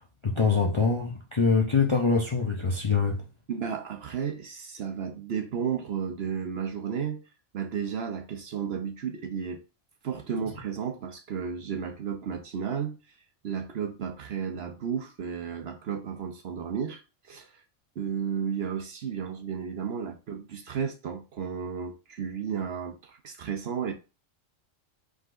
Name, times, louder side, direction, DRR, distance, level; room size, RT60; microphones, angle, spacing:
voice 1, 0.2-3.2, left 4 dB, 35° left, 0.5 m, -24 dB
voice 2, 3.5-7.2 7.5-9.6 10.0-13.0 13.4-17.6 18.0-23.9, right 7 dB, 60° right, 0.8 m, -33 dB
4.8 x 3.9 x 2.5 m
omnidirectional pair, 1.4 m